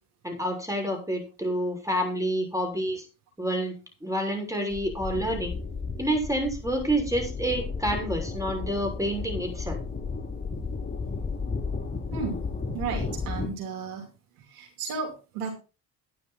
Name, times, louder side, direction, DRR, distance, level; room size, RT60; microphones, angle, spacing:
voice 1, 0.2-3.0 3.4-3.7 4.0-5.6 6.0-9.8, right 1 dB, 5° right, 4 dB, 6.5 m, -28 dB
sound 1, 4.7-13.5, left 4 dB, 20° left, 2.5 m, -33 dB
voice 2, 12.7-14.1 14.4-15.5, right 5 dB, 85° right, 3 dB, 2.7 m, -34 dB
11.0 x 9.8 x 4.4 m, 0.31 s
hypercardioid pair, 50°, 43 cm